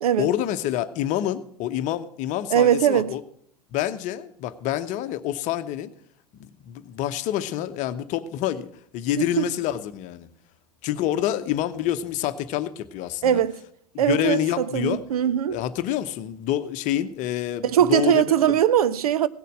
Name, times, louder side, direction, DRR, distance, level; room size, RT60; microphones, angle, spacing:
voice 1, 0.2-3.2 3.7-5.9 6.4-8.7 8.9-10.3 10.8-13.4 13.9-15.0 15.5-18.6, left 12 dB, 40° left, 0.9 m, -27 dB
voice 2, 2.5-3.1 9.2-9.4 13.2-13.6 14.0-15.6 17.6-19.3, right 10 dB, 70° right, 0.6 m, -21 dB
17.0 x 6.8 x 6.1 m
figure-of-eight pair, 95°, 20 cm